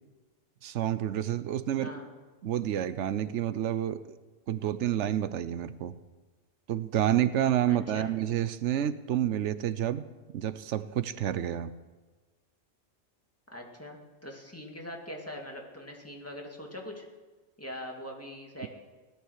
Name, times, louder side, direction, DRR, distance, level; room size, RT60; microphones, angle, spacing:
voice 1, 0.6-1.9 2.4-4.2 4.5-5.9 6.7-10.1 10.3-11.7 18.6-18.7, right 11 dB, 90° right, 14 dB, 1.0 m, -29 dB
voice 2, 1.8-2.1 7.7-8.1 13.5-17.1 17.6-18.7, left 1 dB, 10° left, 0 dB, 2.2 m, -42 dB
17.5 x 12.0 x 6.5 m, 1.3 s
omnidirectional pair, 1.2 m